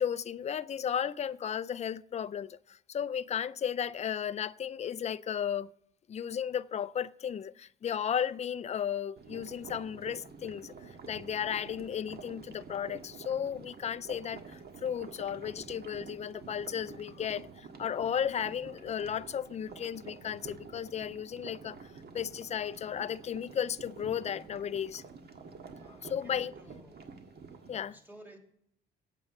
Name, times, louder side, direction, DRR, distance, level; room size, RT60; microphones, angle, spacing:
voice 1, 0.0-5.7 6.1-21.8 22.1-25.0 26.1-26.5 27.7-28.0, left 8 dB, 35° left, 0.4 m, -34 dB
sound 1, 9.2-27.8, right 4 dB, 55° right, 1.6 m, -49 dB
voice 2, 25.8-27.2 27.8-28.4, right 1 dB, 10° right, 2.8 m, -54 dB
8.8 x 7.2 x 7.9 m
cardioid pair, 90°, 20 cm